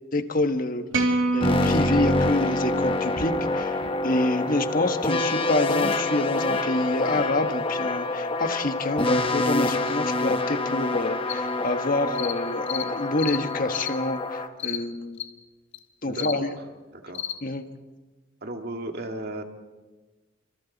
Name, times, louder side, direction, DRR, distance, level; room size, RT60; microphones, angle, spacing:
voice 1, 0.1-0.8 1.1-15.2 16.0-16.5 17.4-17.6, left 2 dB, 45° left, 7 dB, 1.4 m, -27 dB
sound 1, 0.9-3.3, right 2 dB, 85° right, 2.2 m, -27 dB
sound 2, 1.4-14.5, left 2 dB, 30° left, 1.1 m, -26 dB
sound 3, 11.3-11.4 12.1-12.4 12.7-12.9 13.2-13.4 13.7-13.9 14.6-14.8 15.2-15.3 15.7-15.8 16.1-16.4 17.1-17.4, left 10 dB, 70° left, 1.4 m, -32 dB
voice 2, 16.1-16.5 16.9-17.3 18.4-19.4, right 2 dB, 55° right, 4 dB, 2.1 m, -35 dB
30.0 x 26.0 x 4.1 m, 1.3 s
head